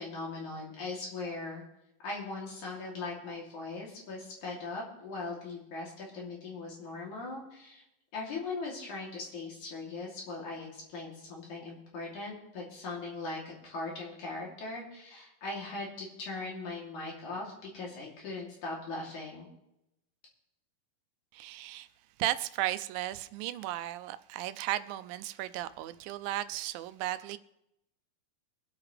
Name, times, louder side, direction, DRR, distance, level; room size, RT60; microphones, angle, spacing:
voice 1, 0.0-1.6 2.0-7.8 8.1-19.5, left 3 dB, 60° left, 4.2 m, -40 dB
voice 2, 21.3-21.9 22.2-27.4, right 14 dB, 90° right, 2.4 m, -35 dB
24.0 x 8.6 x 3.3 m
omnidirectional pair, 4.0 m